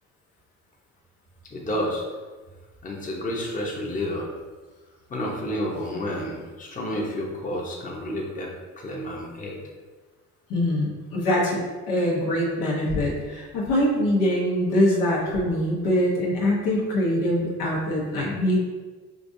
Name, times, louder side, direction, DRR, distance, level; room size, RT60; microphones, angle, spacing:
voice 1, 1.5-2.1 2.8-4.3 5.1-9.6, left 1 dB, 25° left, -2 dB, 0.8 m, -30 dB
voice 2, 10.5-18.6, left 1 dB, 90° left, -4 dB, 1.1 m, -23 dB
5.1 x 2.5 x 2.6 m, 1.3 s
cardioid pair, 95°, 31 cm